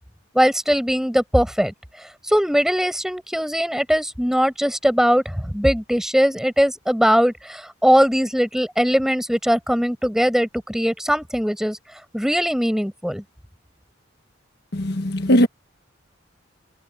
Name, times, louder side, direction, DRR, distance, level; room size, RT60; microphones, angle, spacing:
voice 1, 0.3-1.7 2.3-11.8 12.1-13.2, equal, ahead, 6.0 m, -20 dB
voice 2, 14.7-15.5, equal, 55° left, 1.4 m, -18 dB
head